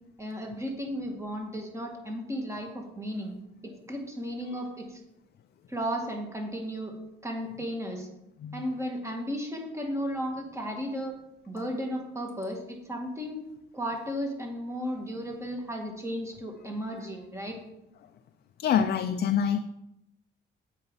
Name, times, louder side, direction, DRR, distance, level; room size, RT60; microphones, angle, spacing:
voice 1, 0.2-3.3 3.6-5.0 5.7-6.9 7.2-8.1 8.5-11.1 11.5-12.6 12.9-13.4 13.7-17.6, equal, 15° right, 1 dB, 2.1 m, -34 dB
voice 2, 18.6-19.6, left 8 dB, 55° left, 9 dB, 0.5 m, -25 dB
7.8 x 4.9 x 5.6 m, 0.84 s
cardioid pair, 90°, 20 cm